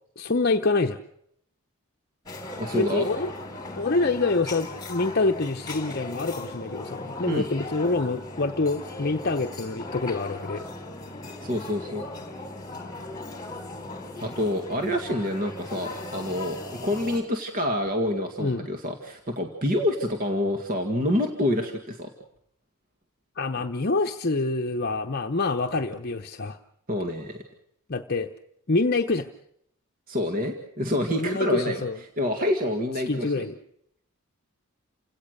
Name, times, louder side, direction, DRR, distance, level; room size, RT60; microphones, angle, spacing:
voice 1, 0.2-1.0 2.7-3.3 3.7-10.6 18.4-18.7 23.4-26.6 27.9-28.3 28.7-29.3 31.2-32.0 33.1-33.5, left 3 dB, 45° left, 4 dB, 0.8 m, -26 dB
sound 1, 2.2-17.2, left 2 dB, 20° left, 3.4 m, -38 dB
voice 2, 2.6-3.1 7.3-7.5 11.4-12.0 14.2-22.1 26.9-27.4 30.1-31.8 32.2-33.4, left 1 dB, 40° right, 4 dB, 2.0 m, -27 dB
29.0 x 17.5 x 6.6 m, 0.74 s
head